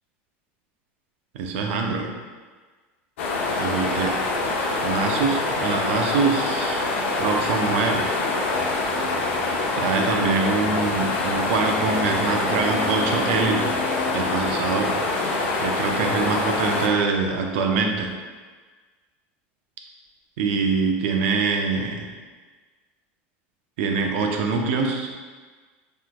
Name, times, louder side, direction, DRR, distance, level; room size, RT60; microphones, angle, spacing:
voice 1, 1.3-2.1 3.6-4.2 4.8-6.8 7.2-8.1 9.8-13.8 14.1-15.3 15.6-18.1 20.4-22.1 23.8-25.1, right 4 dB, 75° right, 3 dB, 0.6 m, -24 dB
sound 1, 3.2-16.9, left 3 dB, 85° left, 0.7 m, -25 dB
sound 2, 8.5-14.8, left 3 dB, 5° left, 1.3 m, -35 dB
5.7 x 3.2 x 2.3 m, 1.4 s
supercardioid pair, 115°, 6 cm